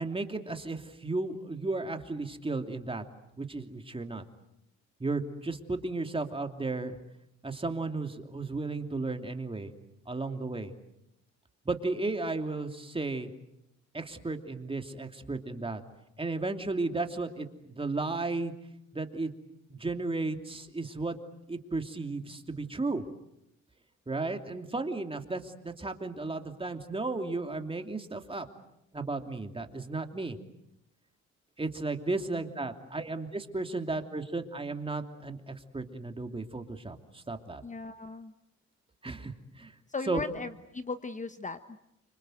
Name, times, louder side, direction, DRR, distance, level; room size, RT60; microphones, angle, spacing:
voice 1, 0.0-3.0 3.4-4.2 5.0-7.0 7.4-9.7 10.1-10.7 11.6-13.3 13.9-15.8 16.2-18.5 18.9-19.3 19.7-21.2 21.5-23.1 24.1-28.5 28.9-30.4 31.6-37.6 39.0-39.7 40.1-40.2, right 3 dB, 20° right, 5 dB, 2.9 m, -34 dB
voice 2, 37.6-38.3 39.9-41.6, left 4 dB, 25° left, 10 dB, 1.2 m, -37 dB
29.5 x 25.5 x 7.9 m, 0.81 s
cardioid pair, 90°, 30 cm